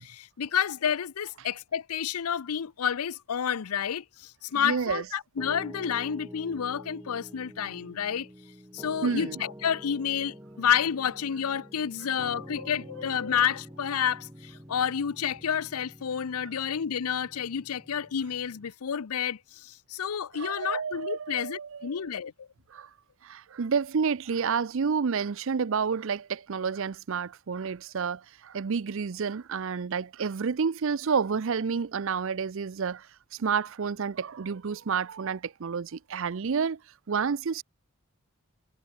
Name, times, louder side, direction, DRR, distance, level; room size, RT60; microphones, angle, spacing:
voice 1, 0.0-8.3 8.7-22.5, left 8 dB, 80° left, 0.6 m, -30 dB
voice 2, 4.5-5.0 9.0-9.4 20.4-22.1 22.7-22.9 23.2-36.8 37.1-37.6, right 6 dB, 60° right, 0.5 m, -30 dB
Piano, 5.4-18.7, equal, 15° right, 3.7 m, -47 dB
head